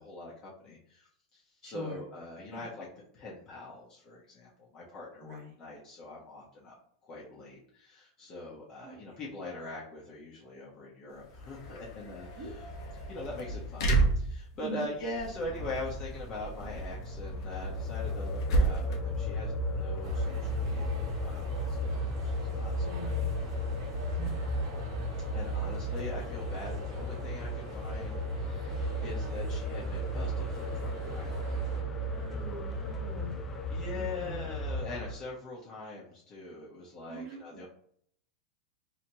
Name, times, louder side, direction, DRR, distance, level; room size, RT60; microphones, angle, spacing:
voice 1, 0.0-2.9 3.1-6.7 7.0-23.4 25.3-31.9 33.7-37.7, left 2 dB, 30° left, -6 dB, 1.2 m, -43 dB
voice 2, 1.6-2.0 2.5-2.6 5.2-5.5 8.8-9.2 12.4-12.5 14.6-14.8 22.8-23.4 24.2-24.5 32.1-33.3 33.9-34.5 37.1-37.7, right 1 dB, 45° right, 0 dB, 1.4 m, -43 dB
sound 1, 11.1-26.5, right 2 dB, 65° left, 0.8 m, -35 dB
sound 2, 16.8-35.1, equal, 15° left, 0.5 m, -34 dB
sound 3, 20.0-31.8, right 3 dB, 75° right, 1.1 m, -48 dB
4.0 x 3.0 x 2.9 m, 0.65 s
supercardioid pair, 140°, 2 cm